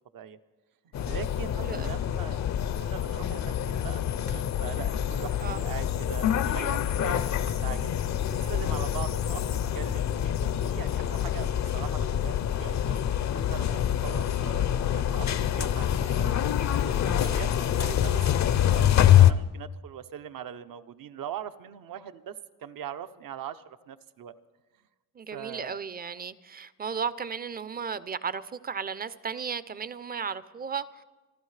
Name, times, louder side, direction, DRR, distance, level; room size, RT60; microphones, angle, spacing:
sound 1, 0.9-19.3, left 10 dB, 50° left, 0.5 m, -26 dB
voice 1, 1.0-2.4 2.8-7.4 7.6-7.9 8.3-16.3 16.8-22.3 22.6-24.4 25.3-25.8, right 9 dB, 65° right, 10 dB, 0.7 m, -41 dB
voice 2, 1.6-1.9 5.4-5.6 17.2-17.4 25.2-31.0, right 6 dB, 25° right, 15 dB, 0.5 m, -35 dB
29.0 x 12.0 x 3.2 m, 1.2 s
cardioid pair, 115°, 36 cm